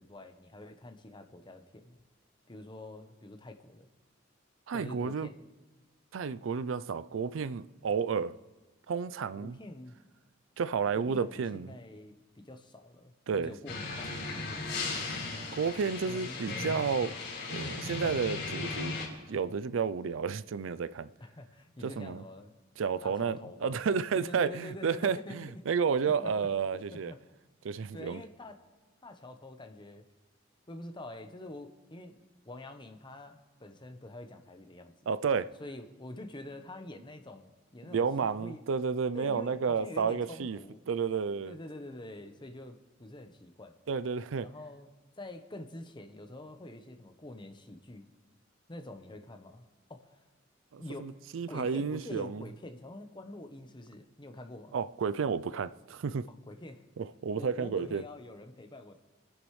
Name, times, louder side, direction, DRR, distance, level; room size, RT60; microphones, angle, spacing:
voice 1, 0.0-2.0 2.5-3.9 4.7-5.3 9.4-10.0 10.9-15.0 16.1-16.6 21.2-22.5 23.0-23.7 24.1-25.6 26.0-26.5 26.9-27.2 27.9-28.6 29.0-30.0 30.7-34.9 35.6-38.6 39.1-40.8 41.5-43.7 44.4-44.9 45.2-48.1 48.7-50.2 50.8-51.2 51.5-54.7 56.3-56.8 57.4-59.0, left 1 dB, 25° left, 0.9 m, -46 dB
voice 2, 4.7-5.3 6.1-8.4 8.9-9.6 10.6-11.7 13.3-13.5 15.5-17.1 17.5-19.0 19.3-21.1 21.8-22.2 22.8-27.1 27.6-28.2 35.1-35.5 37.9-40.6 40.9-41.6 43.9-44.5 50.7-52.4 54.7-56.3 57.0-58.0, right 6 dB, 75° right, 0.4 m, -31 dB
sound 1, 13.7-19.1, left 3 dB, 65° left, 4.4 m, -36 dB
27.0 x 10.0 x 3.2 m
head